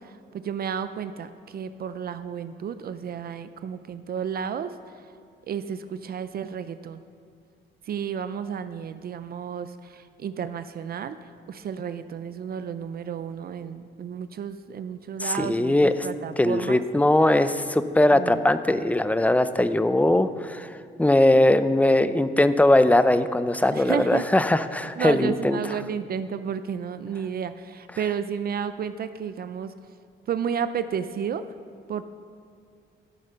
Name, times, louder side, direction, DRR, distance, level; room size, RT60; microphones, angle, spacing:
voice 1, 0.0-5.1 5.5-7.0 7.8-16.8 18.1-18.4 23.7-24.3 25.0-29.7 30.3-31.4 31.9-32.0, right 7 dB, 50° right, 12 dB, 0.5 m, -32 dB
voice 2, 15.2-15.9 16.4-20.7 21.0-25.6, left 1 dB, 5° left, 12 dB, 0.5 m, -20 dB
12.5 x 6.6 x 5.6 m, 2.4 s
cardioid pair, 90°, 20 cm